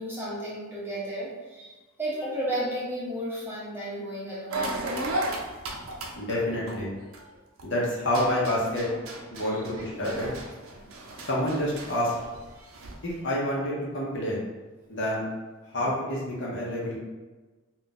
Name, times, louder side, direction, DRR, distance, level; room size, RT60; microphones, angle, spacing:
voice 1, 0.0-5.1 9.4-9.6 12.5-12.7, right 1 dB, 10° right, -8 dB, 0.7 m, -34 dB
sound 1, 4.5-7.6 8.0-13.1, right 1 dB, 80° right, 0.5 m, -35 dB
voice 2, 6.2-6.9 7.6-8.9 9.3-10.3 11.3-12.1 13.0-14.4 14.9-15.2 15.7-17.0, left 1 dB, 55° left, -5 dB, 0.8 m, -28 dB
2.5 x 2.3 x 3.9 m, 1.2 s
head